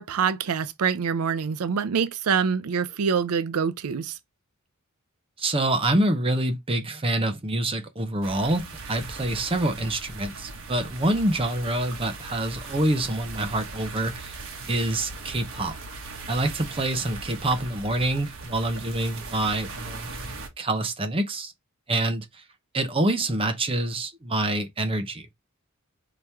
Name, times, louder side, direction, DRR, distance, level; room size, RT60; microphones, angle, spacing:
voice 1, 0.0-4.2, right 6 dB, 85° right, 0.5 m, -25 dB
voice 2, 5.4-14.4 14.6-15.8 16.3-21.5 21.9-22.2 22.7-25.3, right 1 dB, 25° right, 0.7 m, -26 dB
sound 1, 8.2-20.5, right 3 dB, 65° right, 1.2 m, -39 dB
4.8 x 2.9 x 3.4 m
head